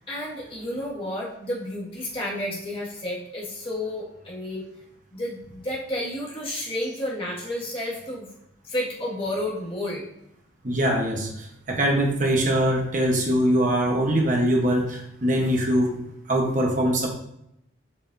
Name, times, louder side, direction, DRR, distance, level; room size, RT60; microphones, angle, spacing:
voice 1, 0.1-4.7 5.1-8.3 8.6-10.1, left 1 dB, 30° left, -6 dB, 1.9 m, -31 dB
voice 2, 10.6-16.0 16.3-17.1, right 1 dB, 40° right, 0 dB, 1.1 m, -22 dB
7.2 x 6.6 x 2.7 m, 0.79 s
head